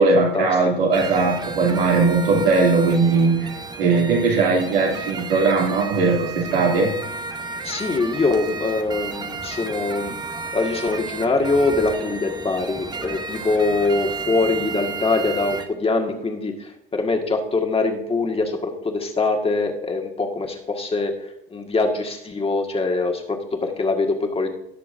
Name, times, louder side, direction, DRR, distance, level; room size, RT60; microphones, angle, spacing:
voice 1, 0.0-6.9, right 4 dB, 75° right, -1 dB, 2.8 m, -19 dB
sound 1, 0.9-15.7, right 4 dB, 15° right, 0.9 m, -33 dB
voice 2, 7.6-10.1 10.5-21.1 21.5-24.5, left 3 dB, 20° left, 2 dB, 1.8 m, -23 dB
17.5 x 6.8 x 2.6 m, 0.77 s
hypercardioid pair, 80°, 30 cm